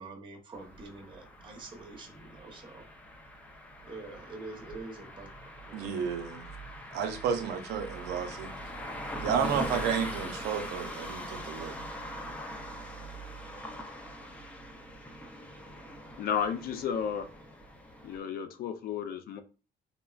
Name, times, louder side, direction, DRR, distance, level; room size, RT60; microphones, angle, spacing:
voice 1, 0.0-2.8 3.8-5.9, right 3 dB, 30° right, 0.8 m, -46 dB
sound 1, 0.5-18.2, equal, 10° left, 0.5 m, -42 dB
voice 2, 5.7-6.5 6.9-8.6 9.2-11.8, right 7 dB, 80° right, 0.6 m, -32 dB
voice 3, 16.2-17.3 18.0-19.4, left 7 dB, 60° left, 0.5 m, -32 dB
3.6 x 2.0 x 2.3 m
cardioid pair, 110°, 17 cm